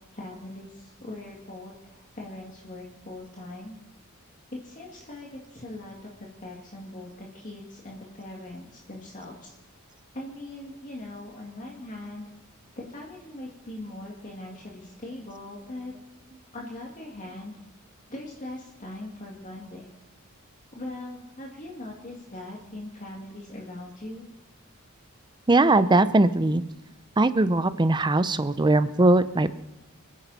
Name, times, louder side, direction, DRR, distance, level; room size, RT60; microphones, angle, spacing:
voice 1, 0.1-3.8 4.5-6.1 6.4-9.6 10.1-12.3 12.8-15.9 16.5-17.6 18.1-19.9 20.7-24.3, left 1 dB, 35° left, -2 dB, 2.3 m, -40 dB
voice 2, 25.5-26.6 27.2-29.6, right 2 dB, 20° right, 14 dB, 0.6 m, -20 dB
28.0 x 10.0 x 4.2 m, 1.1 s
head